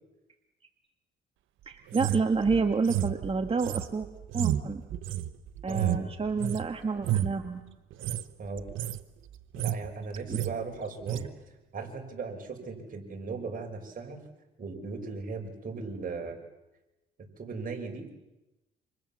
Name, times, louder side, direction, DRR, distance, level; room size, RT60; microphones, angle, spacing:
voice 1, 1.6-4.1 4.3-4.8 5.6-7.6 10.3-10.4, right 4 dB, 30° right, 5 dB, 1.8 m, -29 dB
sound 1, 1.9-6.7 7.0-7.4 7.9-8.2 8.6-9.0 9.3-9.9 10.1-10.5 11.1-11.3, right 12 dB, 80° right, 1.1 m, -31 dB
voice 2, 5.7-6.1 8.4-8.6 9.5-11.3 11.7-14.2 14.6-16.4 17.4-18.1, right 4 dB, 45° right, 2 dB, 5.8 m, -37 dB
28.5 x 26.0 x 7.3 m, 1.0 s
cardioid pair, 90°, 20 cm